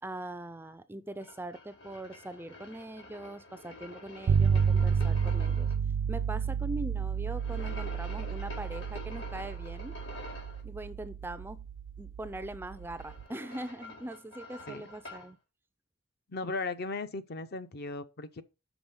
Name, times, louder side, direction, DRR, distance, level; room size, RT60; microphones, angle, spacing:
voice 1, 0.0-10.0 10.6-11.6 12.0-15.4, right 1 dB, 10° right, 0.4 m, -42 dB
sound 1, 1.2-5.7 7.4-10.6 12.7-15.3, left 2 dB, 75° left, 4.4 m, -47 dB
sound 2, 4.3-13.2, right 6 dB, 80° right, 0.3 m, -31 dB
voice 2, 16.3-18.4, left 3 dB, 55° left, 0.7 m, -37 dB
6.1 x 5.6 x 5.3 m
head